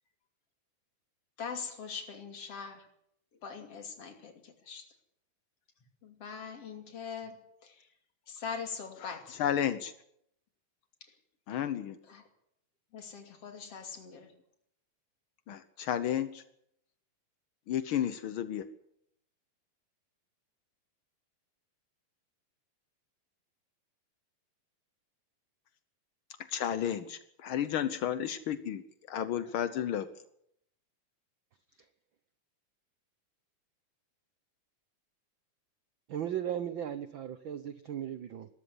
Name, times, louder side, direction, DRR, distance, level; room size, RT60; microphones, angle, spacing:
voice 1, 1.4-2.9 3.4-4.9 6.0-7.8 8.3-9.4 12.1-12.2 12.9-14.3, left 6 dB, 50° left, 6 dB, 3.6 m, -42 dB
voice 2, 9.0-9.9 11.5-12.0 15.5-16.4 17.7-18.6 26.5-28.8 29.1-30.1, left 10 dB, 85° left, 13 dB, 1.1 m, -32 dB
voice 3, 36.1-38.5, right 10 dB, 85° right, 12 dB, 1.0 m, -36 dB
20.5 x 13.5 x 9.8 m, 0.74 s
omnidirectional pair, 3.6 m